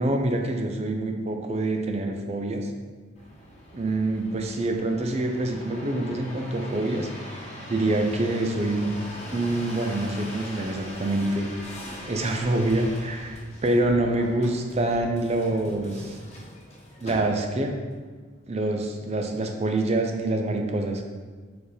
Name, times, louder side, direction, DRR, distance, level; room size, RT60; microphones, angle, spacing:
voice 1, 0.0-2.7 3.7-7.1 7.7-9.0 9.3-11.5 12.1-16.2 17.0-17.7 18.5-21.0, right 2 dB, 35° right, 4 dB, 0.5 m, -26 dB
sound 1, 3.1-17.7 18.3-18.8, left 1 dB, 35° left, 1.3 m, -41 dB
4.6 x 4.3 x 4.9 m, 1.5 s
head